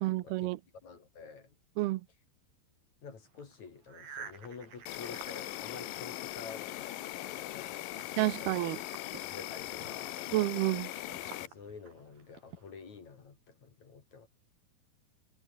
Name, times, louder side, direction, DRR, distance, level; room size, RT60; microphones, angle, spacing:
voice 1, 0.0-0.6 1.8-2.0 8.2-8.8 10.3-10.9, right 18 dB, 75° right, 2.5 m, -29 dB
voice 2, 0.8-1.6 3.0-8.1 8.4-8.6 9.3-10.3 11.4-14.3, left 5 dB, 45° left, 4.2 m, -49 dB
sound 1, 3.2-6.5 6.9-13.0, right 6 dB, 60° right, 6.0 m, -52 dB
Insect, 4.9-11.5, left 15 dB, 70° left, 2.2 m, -40 dB
omnidirectional pair, 4.9 m